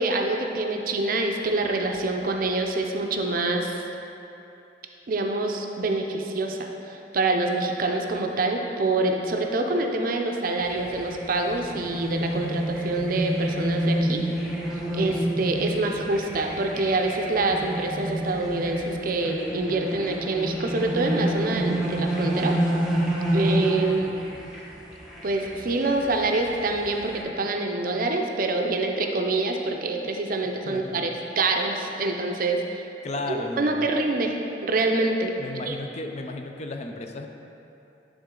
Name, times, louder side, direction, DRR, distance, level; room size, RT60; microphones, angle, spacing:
voice 1, 0.0-3.8 5.1-14.2 14.9-22.5 23.3-24.1 25.2-32.8 33.3-35.3 35.7-35.8, right 2 dB, 50° right, 3 dB, 0.5 m, -26 dB
sound 1, 10.6-27.2, right 1 dB, 5° right, 1.0 m, -29 dB
voice 2, 30.7-31.1 33.0-33.9 35.4-37.3, left 2 dB, 40° left, 4 dB, 0.4 m, -34 dB
10.0 x 3.7 x 3.7 m, 2.9 s
head